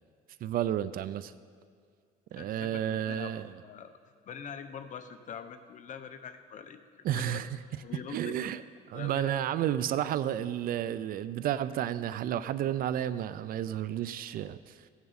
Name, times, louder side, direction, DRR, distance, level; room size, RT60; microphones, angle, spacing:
voice 1, 0.4-1.3 2.3-3.5 7.0-7.5 8.1-8.6 8.9-14.8, right 11 dB, 60° right, 15 dB, 0.5 m, -31 dB
voice 2, 2.3-3.3 3.6-3.9 4.2-7.4 7.8-8.4 8.9-9.3, left 7 dB, 45° left, 9 dB, 0.8 m, -43 dB
16.0 x 9.5 x 4.1 m, 2.1 s
cardioid pair, 110°, 17 cm